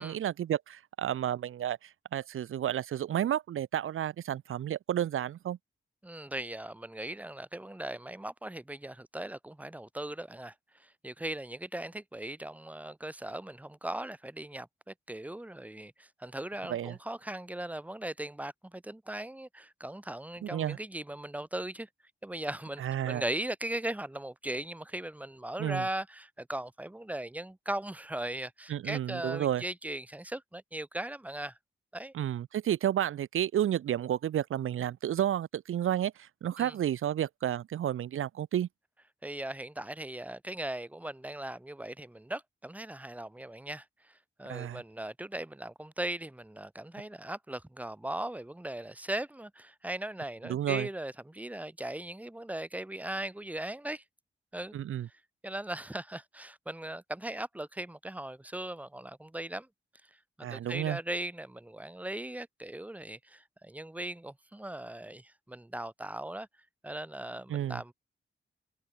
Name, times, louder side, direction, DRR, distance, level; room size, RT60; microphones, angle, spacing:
voice 1, 0.0-5.6 16.7-17.0 20.4-20.8 22.8-23.2 25.6-25.9 28.7-29.6 32.1-38.7 44.5-44.8 50.4-50.9 54.7-55.1 60.4-61.0 67.5-67.8, right 11 dB, 85° right, 0.6 m, -31 dB
voice 2, 6.0-10.5 10.8-21.9 22.2-31.6 31.9-32.1 36.6-36.7 39.2-54.0 54.5-54.7 55.4-59.7 60.4-66.5 66.8-67.9, right 1 dB, 5° right, 1.6 m, -39 dB
wide cardioid pair, 150°, 21 cm